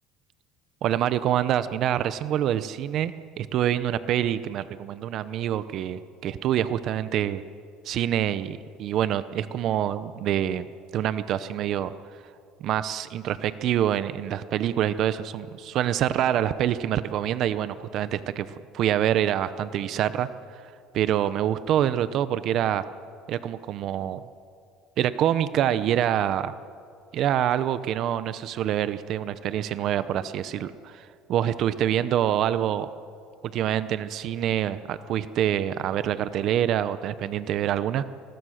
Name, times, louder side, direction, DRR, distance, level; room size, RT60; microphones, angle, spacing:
voice 1, 0.8-7.4 7.8-10.7 10.9-11.9 12.6-20.6 20.9-22.8 23.3-24.2 25.0-26.5 27.1-32.9 33.5-38.0, right 11 dB, 50° right, 13 dB, 0.7 m, -26 dB
29.0 x 20.5 x 6.5 m, 2.4 s
cardioid pair, 140°, 0 cm